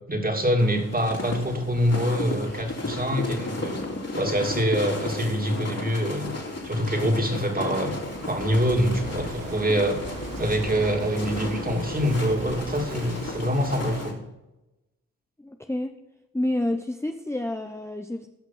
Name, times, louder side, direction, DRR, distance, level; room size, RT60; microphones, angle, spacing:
voice 1, 0.1-3.8 4.1-6.4 6.6-7.9 8.3-10.0 10.4-14.2, equal, 25° right, 3 dB, 2.9 m, -25 dB
sound 1, 0.6-14.1, left 2 dB, 45° left, 3.4 m, -34 dB
Walk footsteps / Wind / Waves surf, 7.5-14.2, right 3 dB, 75° right, 1.9 m, -39 dB
voice 2, 15.4-15.9 16.3-18.3, left 1 dB, 10° left, 5 dB, 0.9 m, -29 dB
16.5 x 5.8 x 5.8 m, 0.97 s
supercardioid pair, 45°, 35 cm